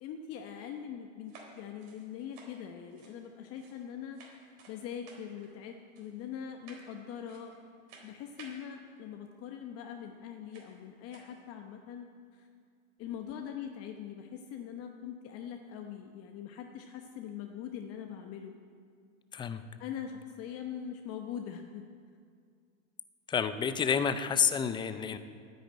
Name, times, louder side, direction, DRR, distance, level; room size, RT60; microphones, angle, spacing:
voice 1, 0.0-7.5 8.0-12.5 13.0-18.5 19.8-21.9, left 8 dB, 35° left, 4 dB, 0.9 m, -42 dB
sound 1, 1.2-3.9 4.1-4.8 5.1-5.5 5.9-6.3 6.6-7.0 7.2-7.6 7.9-8.6 9.8-9.9 10.5-10.7 11.0-11.3, right 4 dB, 45° right, 4.0 m, -54 dB
voice 2, 19.3-19.6 23.3-25.2, left 7 dB, 10° left, 11 dB, 0.5 m, -29 dB
9.9 x 9.3 x 8.8 m, 2.2 s
hypercardioid pair, 110°, 39 cm